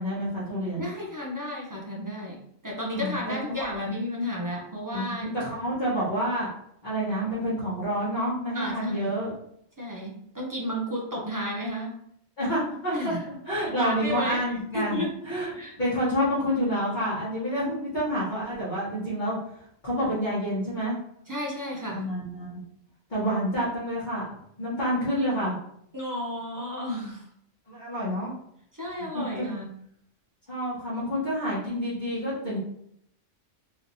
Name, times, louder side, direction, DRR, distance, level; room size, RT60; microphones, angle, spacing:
voice 1, 0.0-0.9 2.9-3.2 3.6-3.9 4.9-6.5 6.8-9.3 12.4-15.5 15.8-19.4 19.8-21.0 21.9-22.6 23.1-25.5 27.7-28.3 29.1-29.5 30.5-32.6, equal, 40° left, -11 dB, 1.2 m, -28 dB
voice 2, 0.8-2.4 2.6-5.3 8.5-9.2 9.8-12.0 12.9-13.2 13.7-15.1 15.5-15.8 21.3-22.0 25.9-27.3 28.7-29.7, left 1 dB, 25° right, -3 dB, 0.4 m, -33 dB
3.1 x 3.0 x 2.7 m, 0.71 s
omnidirectional pair, 1.2 m